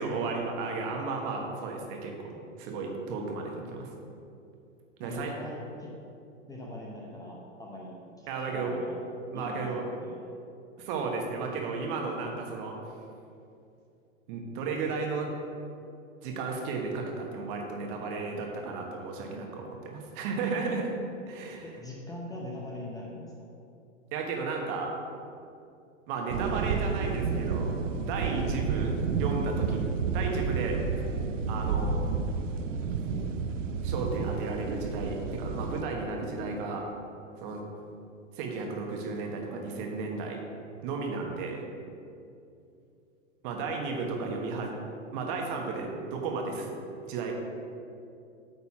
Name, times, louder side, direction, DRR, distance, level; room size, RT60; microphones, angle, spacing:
voice 1, 0.0-3.9 5.0-5.4 8.3-8.8 9.3-9.8 10.8-12.8 14.3-15.3 16.2-20.9 21.3-21.6 24.1-24.9 26.1-27.7 28.0-30.8 31.5-32.0 33.8-36.9 37.4-37.6 38.3-40.4 40.8-41.6 43.4-44.7 45.1-46.7 47.1-47.3, right 4 dB, 40° right, 1 dB, 1.4 m, -33 dB
voice 2, 5.0-5.9 6.5-8.9 9.3-10.3 21.6-23.5, left 1 dB, 10° left, -3 dB, 0.8 m, -42 dB
sound 1, 26.3-35.8, right 5 dB, 80° right, 0.6 m, -31 dB
8.7 x 4.1 x 6.0 m, 2.6 s
hypercardioid pair, 110°, 38 cm